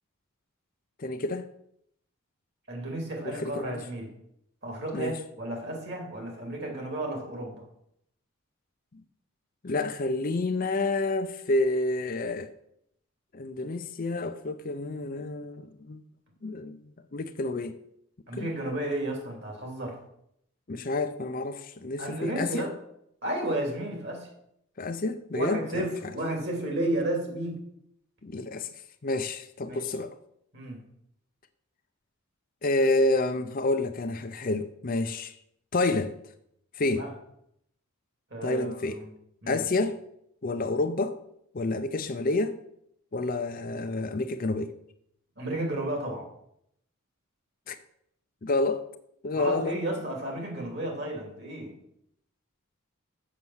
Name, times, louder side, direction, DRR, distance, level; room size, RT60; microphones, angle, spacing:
voice 1, 1.0-1.5 3.2-3.8 4.9-5.1 9.6-12.5 13.3-16.0 16.4-16.8 17.1-17.8 18.3-18.5 20.7-22.7 24.8-25.9 28.2-28.7 29.0-30.1 32.6-35.3 35.7-36.1 36.7-37.1 38.4-39.0 39.5-40.0 40.4-41.2 41.5-42.6 43.1-44.7 47.7-47.8 48.4-48.8 49.2-49.8, left 2 dB, 40° left, 0.5 m, -29 dB
voice 2, 2.7-4.1 4.6-7.6 18.3-20.0 22.0-22.7 23.2-24.3 25.3-27.6 29.7-29.9 30.5-30.8 36.9-37.1 38.3-39.0 39.4-39.6 45.4-46.3 49.3-51.7, right 1 dB, 50° right, 2.7 m, -32 dB
7.2 x 6.7 x 6.2 m
head